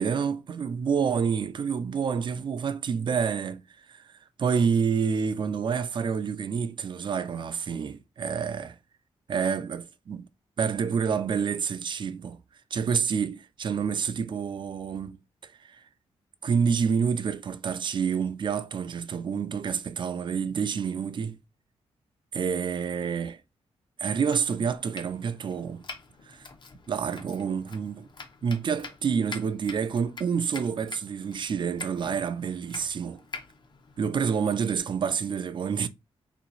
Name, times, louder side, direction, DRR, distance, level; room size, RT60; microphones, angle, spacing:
voice 1, 0.0-3.6 3.9-8.7 9.3-10.3 10.6-12.4 12.7-15.2 15.6-15.8 16.4-21.4 22.3-23.4 24.0-25.8 26.3-26.5 26.9-28.1 28.4-33.2 34.0-35.9, right 6 dB, 45° right, 0.4 m, -28 dB
Domestic sounds home sounds, 24.1-34.8, left 4 dB, 45° left, 0.9 m, -46 dB
3.4 x 3.0 x 4.1 m
wide cardioid pair, 115°, 11 cm